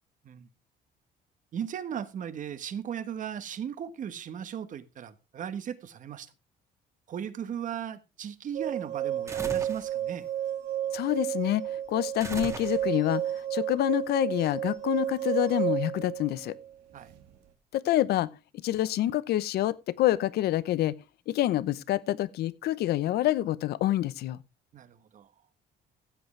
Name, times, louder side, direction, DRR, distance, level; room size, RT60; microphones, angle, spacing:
voice 1, 1.5-6.3 7.1-10.3 16.9-17.1 24.7-25.3, right 8 dB, 50° right, 1.3 m, -37 dB
sound 1, 8.5-17.3, right 11 dB, 85° right, 1.9 m, -32 dB
sound 2, 9.3-9.9 12.2-13.1, right 3 dB, 15° right, 1.9 m, -38 dB
voice 2, 10.9-11.6 11.9-16.6 17.7-18.3 18.6-21.0 21.3-24.4, left 14 dB, 70° left, 0.8 m, -27 dB
15.0 x 8.0 x 3.2 m
cardioid pair, 110°, 17 cm